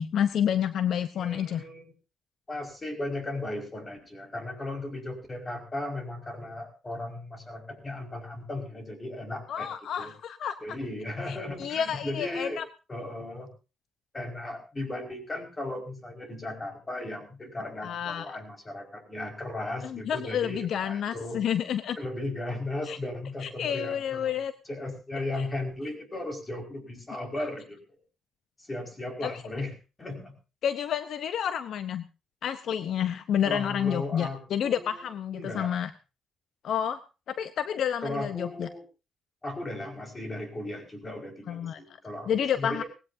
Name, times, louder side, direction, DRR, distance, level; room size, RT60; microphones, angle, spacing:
voice 1, 0.0-1.6 9.5-10.6 11.3-12.6 17.8-18.4 19.8-22.0 22.9-23.0 23.4-24.5 27.4-27.5 29.2-29.3 30.6-32.1 32.4-35.9 36.6-37.0 37.3-38.7 41.5-41.8 42.3-42.8, left 9 dB, 70° left, 12 dB, 0.8 m, -29 dB
voice 2, 1.2-1.8 2.5-10.1 10.6-12.6 12.9-13.5 14.1-21.4 22.0-27.8 28.6-29.7 30.0-30.4 33.4-35.0 35.3-35.8 38.0-38.8 39.4-42.8, left 2 dB, 25° left, 4 dB, 5.1 m, -36 dB
19.0 x 16.5 x 2.7 m, 0.31 s
cardioid pair, 90°, 0 cm